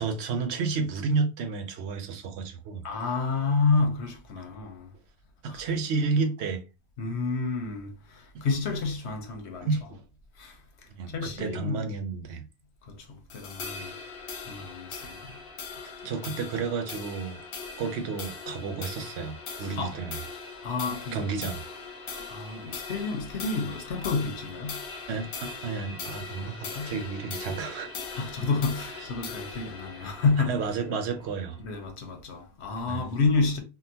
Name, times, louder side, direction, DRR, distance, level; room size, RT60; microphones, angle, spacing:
voice 1, 0.0-2.8 5.4-6.6 9.6-10.0 10.9-12.5 15.0-15.1 15.8-17.5 17.8-20.2 21.1-21.6 25.1-27.9 30.4-31.6 32.9-33.1, right 4 dB, 80° right, 0.9 m, -31 dB
voice 2, 2.8-4.9 5.5-5.6 7.0-9.7 10.4-10.6 11.1-11.9 12.8-13.9 14.4-15.4 15.8-15.9 19.8-20.0 20.6-21.3 22.1-24.9 26.4-26.9 28.1-30.6 31.6-33.6, left 4 dB, 85° left, 1.1 m, -29 dB
sound 1, 13.3-31.9, left 4 dB, 65° left, 0.8 m, -40 dB
3.8 x 2.1 x 2.7 m
omnidirectional pair, 1.1 m